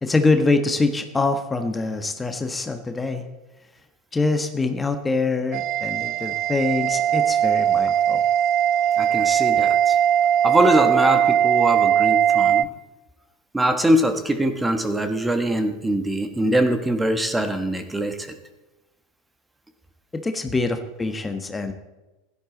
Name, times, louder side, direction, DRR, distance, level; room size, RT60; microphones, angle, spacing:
voice 1, 0.0-3.3 4.1-8.2 20.2-21.7, left 3 dB, 15° left, 7 dB, 1.2 m, -24 dB
sound 1, 5.5-12.6, right 9 dB, 50° right, 0.4 m, -20 dB
voice 2, 9.0-10.0 10.4-12.7 13.5-18.3, right 1 dB, 10° right, 7 dB, 1.4 m, -22 dB
16.0 x 11.0 x 4.0 m, 1.1 s
figure-of-eight pair, 85°, 0 cm